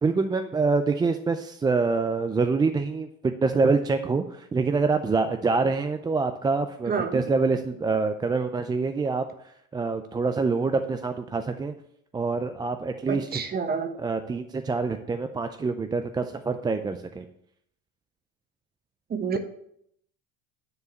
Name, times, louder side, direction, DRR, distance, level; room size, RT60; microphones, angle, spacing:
voice 1, 0.0-9.3 9.7-11.7 12.1-13.4 14.0-17.3, right 4 dB, 15° right, 7 dB, 0.4 m, -26 dB
voice 2, 6.9-7.2 13.1-13.9 19.1-19.4, right 5 dB, 30° right, 8 dB, 1.1 m, -28 dB
9.8 x 4.6 x 6.4 m, 0.72 s
cardioid pair, 125°, 32 cm